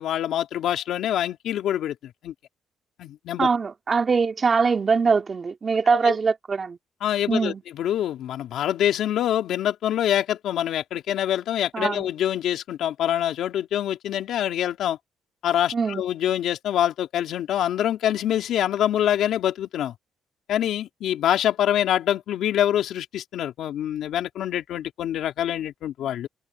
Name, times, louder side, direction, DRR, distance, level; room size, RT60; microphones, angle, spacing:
voice 1, 0.0-2.3 3.0-3.5 6.0-6.2 7.0-15.0 15.4-19.9 20.5-26.3, left 11 dB, 80° left, 3.1 m, -25 dB
voice 2, 3.4-6.8 7.3-7.6 11.7-12.1 15.7-16.0, right 5 dB, 40° right, 2.4 m, -22 dB
cardioid pair, 90°, 0 cm